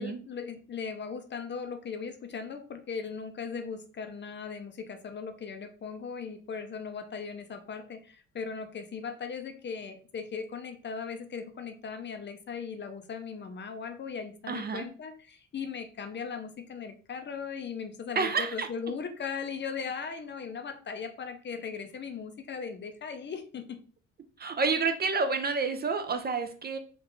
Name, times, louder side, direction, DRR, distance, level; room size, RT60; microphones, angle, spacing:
voice 1, 0.0-23.8, left 5 dB, 35° left, 8 dB, 0.5 m, -38 dB
voice 2, 14.5-14.9 18.2-18.7 24.4-26.8, right 4 dB, 35° right, 8 dB, 0.4 m, -29 dB
3.7 x 2.4 x 3.0 m, 0.41 s
cardioid pair, 90°, 30 cm